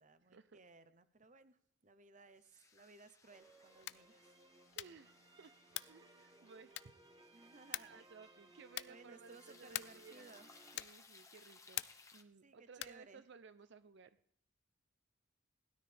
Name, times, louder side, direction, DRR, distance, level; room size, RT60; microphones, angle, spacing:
voice 1, 0.0-4.3 7.3-8.1 8.9-10.5 12.4-13.2, right 3 dB, 40° right, 13 dB, 0.8 m, -61 dB
sound 1, 2.4-12.2, left 4 dB, 15° left, 1.0 m, -65 dB
sound 2, 3.3-10.8, right 2 dB, 20° right, 1.1 m, -64 dB
sound 3, 3.7-4.1 4.7-5.1 5.7-6.1 6.7-7.1 7.7-8.1 8.7-9.1 9.7-10.1 10.7-11.1 11.7-12.1 12.7-13.1, left 14 dB, 60° left, 0.4 m, -45 dB
voice 2, 4.8-6.9 7.3-7.5 7.8-10.5 10.7-11.9 12.1-14.2, right 5 dB, 60° right, 12 dB, 0.6 m, -59 dB
19.0 x 13.0 x 3.4 m, 0.65 s
head